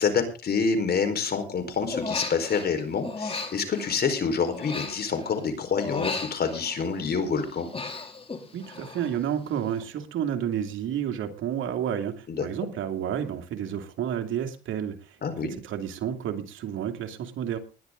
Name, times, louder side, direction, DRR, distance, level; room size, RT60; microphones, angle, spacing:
voice 1, 0.0-7.7 12.3-12.5 15.2-15.6, left 5 dB, 50° left, 7 dB, 4.6 m, -27 dB
Human voice, 1.9-2.7 3.0-5.4 5.8-7.0 7.4-9.2 9.4-9.8, left 4 dB, 30° left, 3.3 m, -36 dB
voice 2, 8.5-15.2 15.6-17.6, right 9 dB, 80° right, 6 dB, 2.6 m, -30 dB
20.0 x 11.0 x 3.9 m, 0.33 s
cardioid pair, 90°, 20 cm